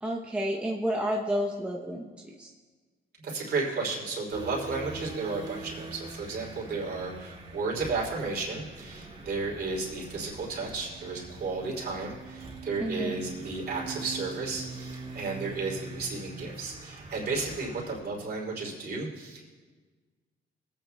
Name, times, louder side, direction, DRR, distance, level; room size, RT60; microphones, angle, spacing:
voice 1, 0.0-2.5 12.8-13.2, equal, 5° right, -2 dB, 0.8 m, -31 dB
voice 2, 3.2-19.5, right 3 dB, 55° right, -3 dB, 3.2 m, -33 dB
sound 1, 4.3-18.0, right 3 dB, 25° right, 2.0 m, -43 dB
22.0 x 8.7 x 2.3 m, 1.4 s
cardioid pair, 90°, 20 cm